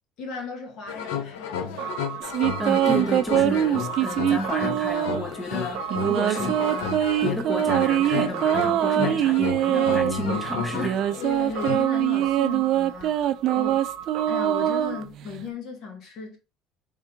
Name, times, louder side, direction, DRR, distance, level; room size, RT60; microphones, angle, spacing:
voice 1, 0.2-2.0 9.7-10.0 11.1-13.3 13.5-13.8 14.3-16.4, left 5 dB, 60° left, 1.5 m, -36 dB
sound 1, 0.9-11.8, left 7 dB, 90° left, 0.7 m, -32 dB
sound 2, 1.8-15.0, right 9 dB, 75° right, 0.7 m, -36 dB
sound 3, 2.2-5.3 5.9-10.1 10.7-15.4, right 12 dB, 60° right, 0.3 m, -23 dB
voice 2, 2.6-11.1, equal, 10° left, 0.6 m, -32 dB
3.6 x 3.3 x 2.9 m
supercardioid pair, 110°, 0 cm